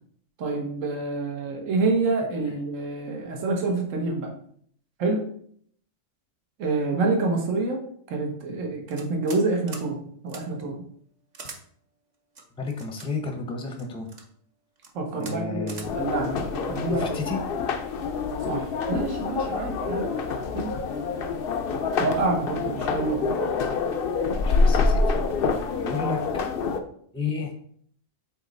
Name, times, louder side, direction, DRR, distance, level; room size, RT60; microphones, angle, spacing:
voice 1, 0.4-4.3 5.0-5.3 6.6-10.8 14.9-17.4 18.4-20.1 20.5-20.7 22.0-23.3, right 3 dB, 70° right, 2 dB, 1.4 m, -27 dB
sound 1, 8.9-9.4 9.7-9.9 10.3-10.4 11.3-11.6 12.3-13.1 13.8-14.2 14.8-14.9 15.2-15.4 15.7-15.9, right 3 dB, 40° right, 0.7 m, -41 dB
voice 2, 12.6-14.1 15.1-16.0 16.9-17.4 24.3-25.1 25.8-26.2 27.1-27.5, left 4 dB, 5° left, 3 dB, 0.6 m, -32 dB
sound 2, 15.8-26.8, left 4 dB, 60° left, 0.7 m, -26 dB
7.8 x 3.0 x 4.0 m, 0.62 s
omnidirectional pair, 1.4 m